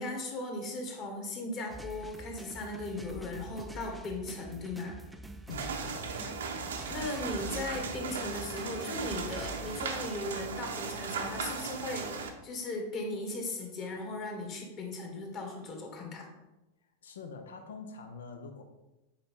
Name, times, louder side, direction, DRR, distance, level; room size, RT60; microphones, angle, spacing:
voice 1, 0.0-5.0 6.9-16.3, left 2 dB, 35° left, 2 dB, 1.8 m, -37 dB
sound 1, 1.7-9.9, right 1 dB, 5° right, 0.5 m, -46 dB
voice 2, 5.5-6.2 16.8-18.6, left 4 dB, 65° left, 7 dB, 0.7 m, -45 dB
sound 2, 5.5-12.3, right 5 dB, 65° right, 0.8 m, -37 dB
8.0 x 5.0 x 3.7 m, 1.0 s
figure-of-eight pair, 90°, 0 cm